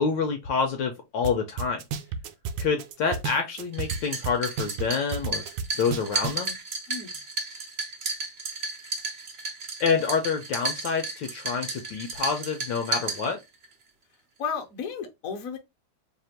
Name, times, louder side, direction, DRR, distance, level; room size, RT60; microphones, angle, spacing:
voice 1, 0.0-1.8 2.6-5.4 5.7-6.6 9.8-13.4, left 5 dB, 70° left, 1.2 m, -27 dB
sound 1, 1.2-1.3 1.6-4.0 4.2-6.5, right 6 dB, 75° right, 1.2 m, -31 dB
sound 2, 3.7-13.7, right 3 dB, 90° right, 0.5 m, -33 dB
voice 2, 14.4-15.6, left 6 dB, 55° left, 0.9 m, -33 dB
3.4 x 2.5 x 4.3 m
omnidirectional pair, 2.4 m